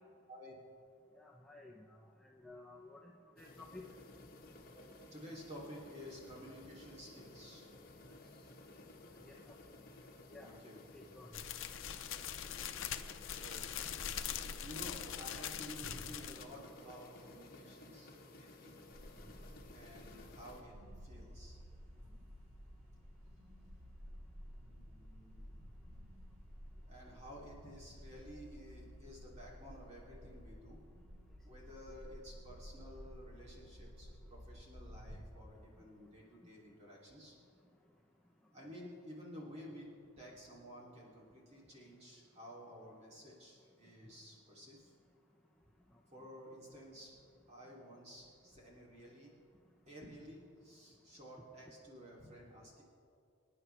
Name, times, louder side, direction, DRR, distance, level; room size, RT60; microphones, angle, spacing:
voice 1, 1.2-2.0 2.4-3.0 3.4-3.8 9.3-9.5 10.3-10.5 10.9-11.3, left 2 dB, 5° left, -2 dB, 0.6 m, -53 dB
sound 1, 3.4-20.6, left 2 dB, 45° left, 1.4 m, -56 dB
voice 2, 4.7-7.7 8.1-8.2 10.4-10.8 12.2-12.5 13.2-14.1 14.6-18.7 19.7-20.7 21.0-21.6 24.7-25.8 26.9-30.8 31.4-37.3 38.5-39.9 40.2-44.9 46.1-47.2 47.5-49.3 49.9-52.8, equal, 30° right, -4 dB, 3.0 m, -53 dB
sound 2, 11.3-16.5, left 9 dB, 75° left, 0.6 m, -42 dB
sound 3, 18.9-35.3, equal, 90° right, 1.7 m, -53 dB
25.0 x 9.7 x 3.4 m, 2.4 s
head